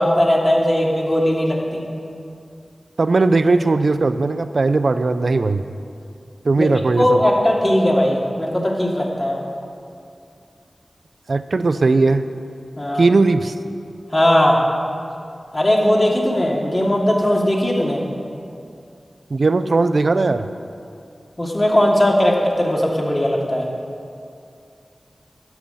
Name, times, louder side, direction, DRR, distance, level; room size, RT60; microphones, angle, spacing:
voice 1, 0.0-1.8 6.6-6.7 7.0-9.4 12.8-13.1 14.1-14.6 15.5-18.0 21.4-23.7, left 1 dB, 30° left, -3 dB, 2.8 m, -18 dB
voice 2, 3.0-5.6 6.4-7.2 11.3-12.2 13.0-13.5 19.3-20.5, right 3 dB, 70° right, 11 dB, 0.5 m, -18 dB
12.5 x 6.5 x 9.2 m, 2.5 s
cardioid pair, 40°, 0 cm